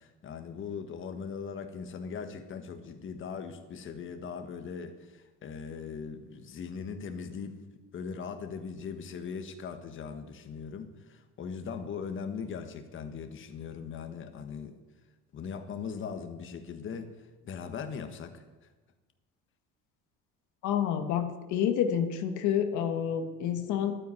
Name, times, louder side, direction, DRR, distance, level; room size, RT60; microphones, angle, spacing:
voice 1, 0.0-7.6 7.9-14.7 15.3-18.4, left 6 dB, 40° left, 7 dB, 1.6 m, -40 dB
voice 2, 20.6-24.0, left 9 dB, 70° left, 6 dB, 1.5 m, -29 dB
12.0 x 9.6 x 9.8 m, 1.2 s
cardioid pair, 115°, 30 cm